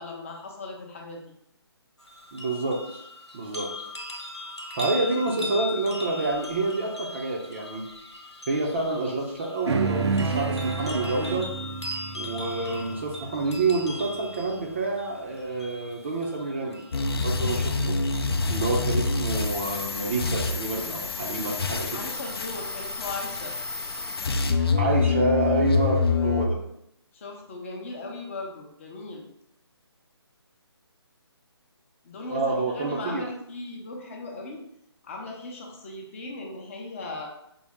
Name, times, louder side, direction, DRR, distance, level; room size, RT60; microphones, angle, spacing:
voice 1, 0.0-1.3 21.9-23.5 27.1-29.3 32.0-34.6 35.0-37.3, left 2 dB, 30° left, 0 dB, 0.7 m, -38 dB
sound 1, 2.0-17.0 17.5-17.6, left 1 dB, 90° left, 1.2 m, -39 dB
voice 2, 2.3-3.1 3.3-3.7 4.7-7.9 8.5-11.5 12.1-16.8 17.2-18.0 18.5-22.0 24.6-26.6 32.3-33.2, right 3 dB, 25° right, 0 dB, 0.5 m, -28 dB
sound 2, 9.7-14.4, right 4 dB, 80° right, 0.4 m, -30 dB
sound 3, 16.9-26.5, left 4 dB, 65° left, 0.5 m, -26 dB
5.2 x 2.0 x 3.5 m, 0.77 s
figure-of-eight pair, 155°, 14 cm